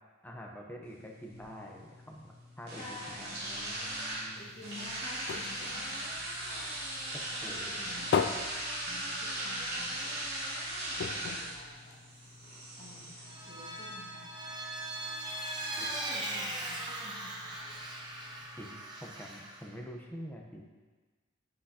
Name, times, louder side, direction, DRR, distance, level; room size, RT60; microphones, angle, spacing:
voice 1, 0.2-4.5 7.1-8.2 18.6-20.7, equal, 10° left, 0 dB, 0.9 m, -47 dB
sound 1, 0.8-18.8, right 1 dB, 55° right, 2.4 m, -40 dB
voice 2, 2.7-3.4 4.3-8.3 8.9-10.6 10.9-12.3 12.8-14.3 15.7-17.8, left 2 dB, 35° left, -10 dB, 2.2 m, -51 dB
sound 2, 4.4-7.0 7.4-9.6 10.0-10.1 10.4-10.5 11.0-12.5 13.1-13.2, left 6 dB, 60° left, 0.4 m, -36 dB
Vehicle, 13.2-19.6, right 1 dB, 20° right, 1.0 m, -39 dB
8.2 x 8.1 x 2.9 m, 1.3 s
head